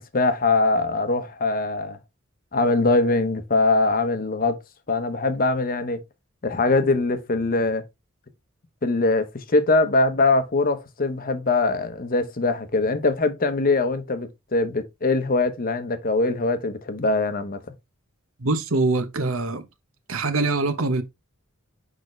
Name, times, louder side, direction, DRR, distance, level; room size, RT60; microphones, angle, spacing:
voice 1, 0.0-2.0 2.5-4.6 4.9-6.0 6.4-7.8 8.8-17.6, left 3 dB, 45° left, 0.9 m, -22 dB
voice 2, 18.4-19.6 20.1-21.0, right 3 dB, 80° right, 1.1 m, -23 dB
6.5 x 5.0 x 3.2 m
head